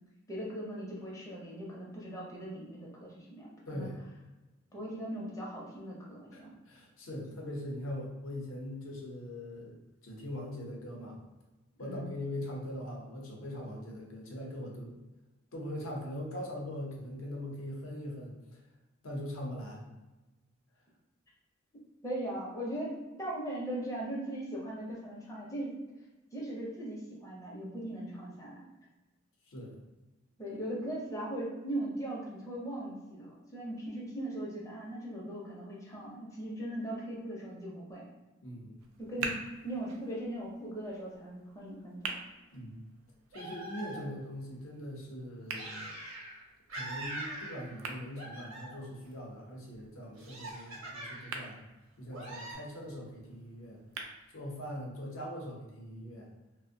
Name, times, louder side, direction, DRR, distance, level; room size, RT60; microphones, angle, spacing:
voice 1, 0.3-3.9 4.7-6.5 11.8-12.1 22.0-25.7 26.3-28.6 30.4-38.1 39.0-39.4 39.6-42.2, right 1 dB, 15° left, -4 dB, 0.5 m, -39 dB
voice 2, 3.7-4.0 6.3-9.8 10.0-11.2 11.8-15.0 15.5-18.4 19.0-19.9 29.5-29.8 38.4-38.8 39.2-39.3 42.5-42.8 43.3-45.9 46.7-51.6 52.0-53.8 54.3-56.3, left 1 dB, 70° left, -1 dB, 0.6 m, -41 dB
sound 1, 38.8-54.8, right 4 dB, 85° right, 0.3 m, -47 dB
sound 2, 43.3-44.3 45.5-46.4 46.7-47.9 48.1-49.0 50.2-51.4 52.1-52.5, right 1 dB, 70° right, 0.8 m, -43 dB
2.4 x 2.0 x 2.6 m, 1.1 s
head